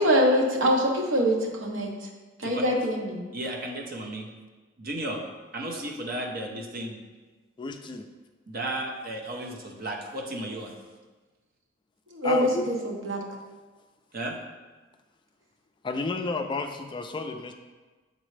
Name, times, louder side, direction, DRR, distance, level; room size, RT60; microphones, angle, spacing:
voice 1, 0.0-1.9 2.4-3.2 12.1-13.2, equal, 75° right, 0 dB, 1.0 m, -24 dB
voice 2, 2.7-3.2 7.6-8.0 12.2-12.7 15.8-17.5, left 3 dB, 25° left, 5 dB, 0.3 m, -32 dB
voice 3, 3.3-4.3 4.8-5.2 5.5-7.0 8.5-10.7 14.1-14.4, right 1 dB, 50° right, 1 dB, 0.8 m, -34 dB
7.6 x 3.9 x 3.2 m, 1.3 s
head